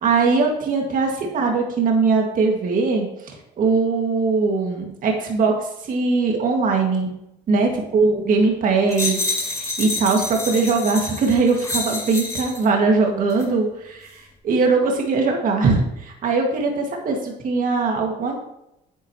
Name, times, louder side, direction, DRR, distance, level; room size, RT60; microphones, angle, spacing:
voice 1, 0.0-7.1 7.5-18.3, right 4 dB, 55° right, 1 dB, 2.0 m, -21 dB
sound 1, 8.9-12.7 13.3-13.5, left 2 dB, 15° left, 2.2 m, -28 dB
9.4 x 8.9 x 3.0 m, 0.82 s
cardioid pair, 110°, 17 cm